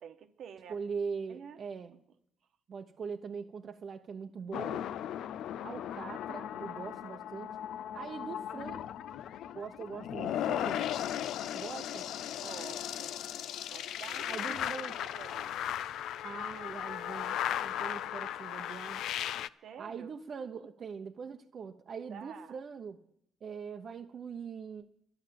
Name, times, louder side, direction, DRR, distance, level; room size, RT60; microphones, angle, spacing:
voice 1, 0.0-0.8 1.3-1.6 1.9-2.0 12.3-13.2 13.7-15.6 18.0-18.3 19.6-20.7 22.1-22.5, right 8 dB, 70° right, 7 dB, 1.2 m, -49 dB
voice 2, 0.7-1.9 2.7-4.9 5.6-7.6 7.9-8.8 9.5-10.9 11.5-12.1 14.3-15.0 16.2-19.0 19.5-23.0 23.4-24.8, right 6 dB, 50° right, 4 dB, 0.8 m, -42 dB
sound 1, 4.5-19.5, left 11 dB, 80° left, 0.4 m, -37 dB
11.5 x 11.5 x 7.6 m, 0.71 s
cardioid pair, 90°, 0 cm